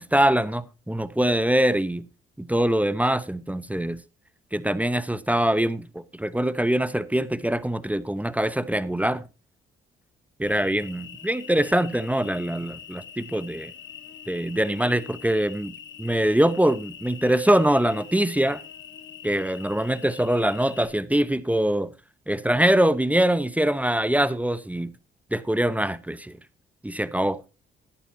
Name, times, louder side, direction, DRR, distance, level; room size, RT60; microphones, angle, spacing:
voice 1, 0.0-2.0 2.4-4.0 4.5-9.2 10.4-13.7 14.3-15.7 16.0-18.6 19.2-21.9 22.3-24.9 25.3-26.2 26.8-27.4, right 1 dB, 5° right, 0.9 m, -23 dB
Cricket, 10.5-20.9, left 8 dB, 65° left, 1.4 m, -44 dB
15.0 x 11.0 x 2.7 m
supercardioid pair, 70°, 21 cm